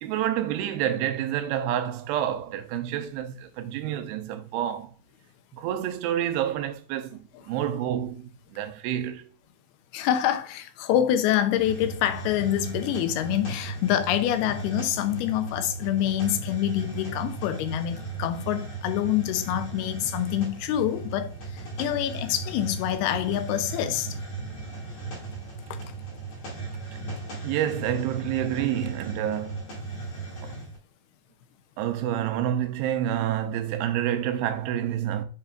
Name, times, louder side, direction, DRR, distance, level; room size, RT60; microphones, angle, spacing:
voice 1, 0.0-4.9 5.5-9.3 27.4-29.6 30.4-30.6 31.8-35.2, right 11 dB, 90° right, 2.7 m, -28 dB
voice 2, 9.9-24.2 25.7-25.8, left 11 dB, 85° left, 2.7 m, -26 dB
Hiss, 11.5-30.8, right 3 dB, 50° left, 3.5 m, -36 dB
7.2 x 5.5 x 2.4 m
omnidirectional pair, 4.4 m